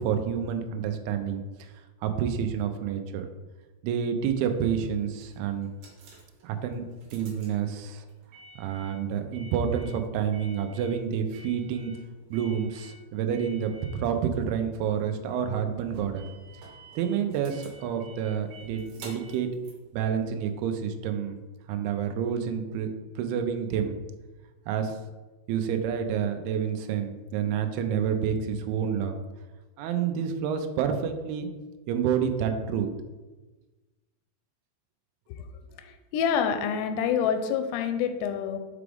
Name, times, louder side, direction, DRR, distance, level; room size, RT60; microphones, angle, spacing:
voice 1, 0.0-1.7 2.0-3.3 3.8-5.7 6.4-6.9 7.1-8.0 8.6-11.9 12.3-16.3 17.0-19.5 19.9-21.4 21.7-22.9 23.2-24.0 24.7-25.0 25.5-29.1 29.8-31.5 31.9-32.9, right 8 dB, 85° right, 6 dB, 2.3 m, -29 dB
sound 1, 4.4-20.8, right 2 dB, 70° right, 2.3 m, -51 dB
voice 2, 35.8-38.6, left 7 dB, 85° left, 7 dB, 2.6 m, -27 dB
6.0 x 4.8 x 3.4 m, 1.2 s
omnidirectional pair, 5.0 m